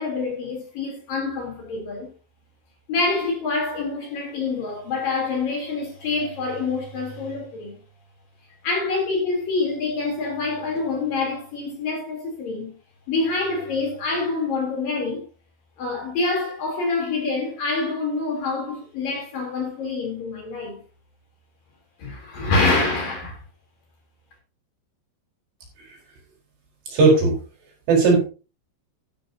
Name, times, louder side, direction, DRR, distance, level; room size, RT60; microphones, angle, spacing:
voice 1, 0.0-2.1 2.9-7.8 8.6-12.7 13.1-15.2 15.8-20.8 22.0-23.4, left 3 dB, 50° left, 4.7 m, -26 dB
voice 2, 26.9-27.3 27.9-28.2, right 3 dB, 60° right, 6.3 m, -16 dB
13.0 x 13.0 x 2.8 m
omnidirectional pair, 5.5 m